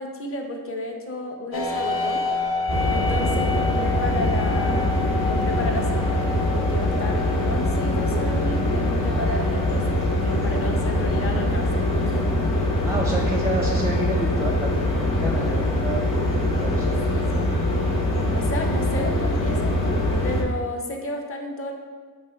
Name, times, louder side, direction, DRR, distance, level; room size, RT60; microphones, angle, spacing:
voice 1, 0.0-2.2 2.9-12.3 13.1-13.3 17.2-17.5 18.3-20.0 20.2-21.7, left 1 dB, 35° left, 2 dB, 0.6 m, -32 dB
sound 1, 1.5-15.1, left 3 dB, 85° left, 0.7 m, -32 dB
sound 2, 2.7-20.4, left 1 dB, 60° left, 1.0 m, -23 dB
voice 2, 12.8-17.0, right 1 dB, 10° right, -1 dB, 0.4 m, -29 dB
4.9 x 3.3 x 2.4 m, 1.5 s
cardioid pair, 60°, 37 cm